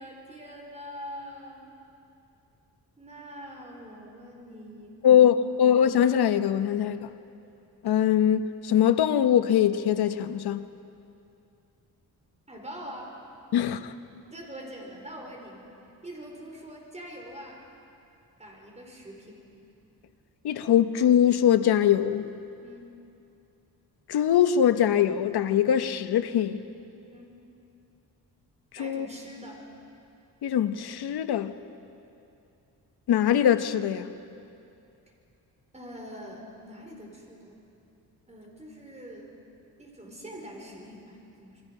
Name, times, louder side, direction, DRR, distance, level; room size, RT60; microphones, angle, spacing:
voice 1, 0.0-1.7 3.0-5.6 12.5-13.2 14.3-15.7 16.0-17.6 18.4-19.4 22.6-22.9 27.1-27.5 28.8-29.6 35.7-37.6 38.3-39.3 39.8-41.6, equal, 20° right, 4.8 m, -44 dB
voice 2, 5.0-7.1 7.8-10.6 13.5-13.9 20.4-22.2 24.1-26.6 28.8-29.1 30.4-31.5 33.1-34.1, left 9 dB, 85° left, 1.0 m, -22 dB
28.5 x 23.0 x 5.5 m
cardioid pair, 110°, 38 cm